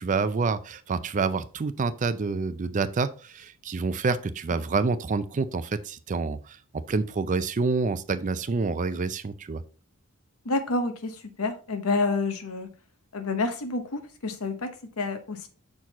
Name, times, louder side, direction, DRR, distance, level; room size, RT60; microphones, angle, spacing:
voice 1, 0.0-6.6 6.9-9.6, right 4 dB, 35° right, 0.4 m, -27 dB
voice 2, 10.4-12.7 13.1-15.5, left 3 dB, 75° left, 1.0 m, -29 dB
6.0 x 4.5 x 4.0 m
head